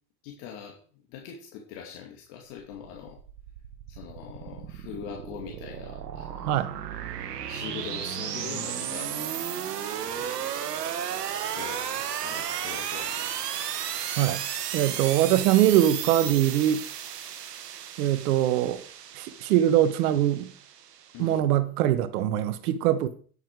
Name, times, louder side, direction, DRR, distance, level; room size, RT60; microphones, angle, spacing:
voice 1, 0.2-3.2 3.9-6.5 7.5-9.3 10.0-10.4 11.4-13.3 21.1-21.4, left 8 dB, 60° left, 2.7 m, -42 dB
sound 1, 2.7-21.3, right 9 dB, 90° right, 1.5 m, -34 dB
voice 2, 14.7-16.8 18.0-18.8 19.1-20.5 21.2-23.1, right 12 dB, 70° right, 1.4 m, -22 dB
10.0 x 9.0 x 4.8 m
hypercardioid pair, 110°, 46 cm